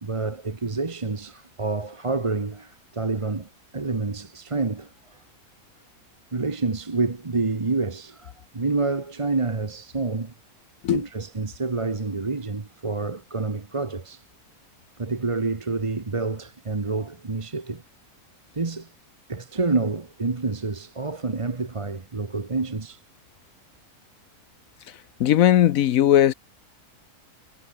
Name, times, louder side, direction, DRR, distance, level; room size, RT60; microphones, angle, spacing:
voice 1, 0.0-5.2 6.3-10.3 10.9-14.2 15.0-17.8 18.5-18.9 19.3-23.0, right 3 dB, 25° right, 1.0 m, -28 dB
voice 2, 25.2-26.3, left 11 dB, 65° left, 1.0 m, -18 dB
omnidirectional pair, 1.6 m